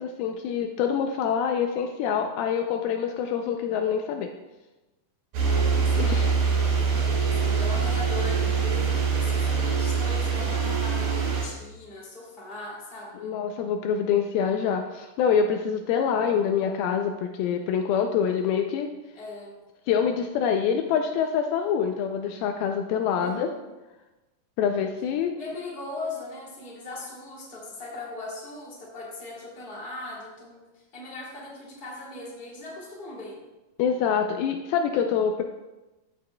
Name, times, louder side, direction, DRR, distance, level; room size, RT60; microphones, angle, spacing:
voice 1, 0.0-4.3 6.0-6.3 13.2-18.9 19.9-23.5 24.6-25.4 33.8-35.4, left 7 dB, 80° left, 5 dB, 2.3 m, -25 dB
sound 1, 5.3-11.4, right 5 dB, 65° right, 3.7 m, -24 dB
voice 2, 5.4-6.1 6.9-13.3 19.1-19.6 23.2-23.6 25.4-33.4, left 2 dB, 20° left, -5 dB, 1.8 m, -39 dB
14.5 x 6.7 x 2.2 m, 1.1 s
omnidirectional pair, 4.5 m